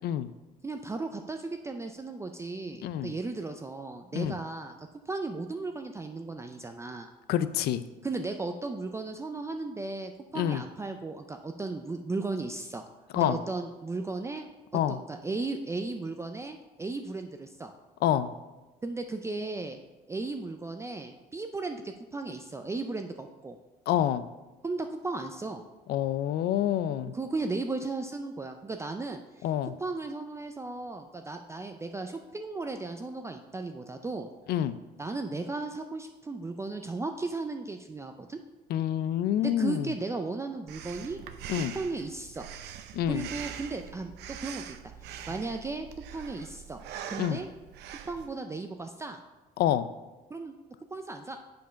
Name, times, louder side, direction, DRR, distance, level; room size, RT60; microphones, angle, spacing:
voice 1, 0.6-7.1 8.0-12.8 13.2-14.5 14.9-17.7 18.8-19.8 20.1-23.6 24.6-25.6 27.1-29.5 29.8-34.3 35.0-38.4 39.4-41.2 41.7-42.5 43.1-44.1 44.4-44.8 45.1-45.9 46.1-47.5 48.1-49.2 50.3-50.5 50.9-51.4, right 3 dB, 15° right, 5 dB, 0.4 m, -35 dB
voice 2, 7.3-7.8 10.4-10.6 13.1-13.4 14.7-15.0 18.0-18.3 23.9-24.2 25.9-27.1 29.4-29.7 34.5-34.8 38.7-39.9 41.5-41.7 42.9-43.3 47.2-47.4 49.6-49.9, left 11 dB, 70° left, 14 dB, 0.4 m, -27 dB
Breathing, 40.7-48.3, right 9 dB, 80° right, 0.6 m, -43 dB
6.8 x 5.2 x 5.7 m, 1.1 s
cardioid pair, 110°, 17 cm